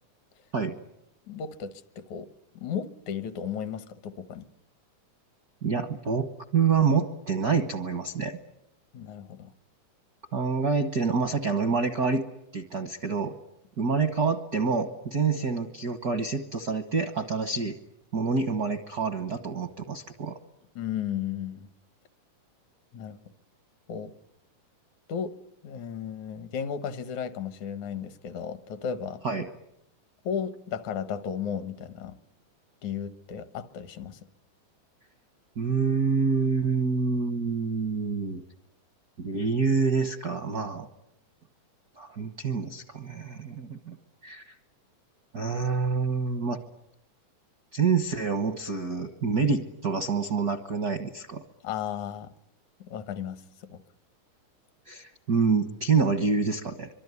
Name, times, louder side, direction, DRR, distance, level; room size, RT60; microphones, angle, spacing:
voice 1, 1.3-2.3 2.6-4.5 8.9-9.5 20.8-21.7 22.9-23.2 23.9-24.1 25.1-25.3 25.6-29.2 30.2-32.2 32.8-34.2 51.6-52.3 52.8-53.8, left 8 dB, 75° left, 12 dB, 2.5 m, -34 dB
voice 2, 5.6-6.3 6.5-8.4 10.3-12.2 12.5-13.3 13.8-17.8 18.1-20.4 29.2-29.5 35.6-38.4 39.2-40.9 42.0-44.0 44.2-44.5 45.3-46.6 47.7-51.4 54.9-56.9, right 5 dB, 60° right, 8 dB, 1.0 m, -27 dB
25.0 x 23.5 x 9.6 m, 0.81 s
omnidirectional pair, 3.5 m